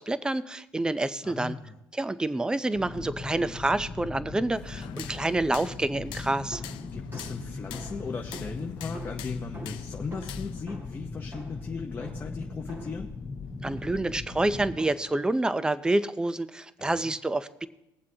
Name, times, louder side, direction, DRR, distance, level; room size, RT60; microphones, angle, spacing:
voice 1, 0.0-1.6 1.9-6.6 13.6-17.7, right 2 dB, 10° right, 14 dB, 0.5 m, -28 dB
voice 2, 1.2-1.8 4.7-5.0 6.9-13.1 16.8-17.1, left 5 dB, 25° left, 1 dB, 0.7 m, -37 dB
sound 1, 2.7-14.8, left 3 dB, 40° left, 1.5 m, -39 dB
sound 2, 4.5-10.6, left 12 dB, 80° left, 0.6 m, -45 dB
sound 3, 6.5-13.2 13.7-14.1 14.8-15.3, right 2 dB, 30° right, 1.8 m, -47 dB
21.0 x 7.4 x 2.8 m, 0.89 s
cardioid pair, 105°, 8 cm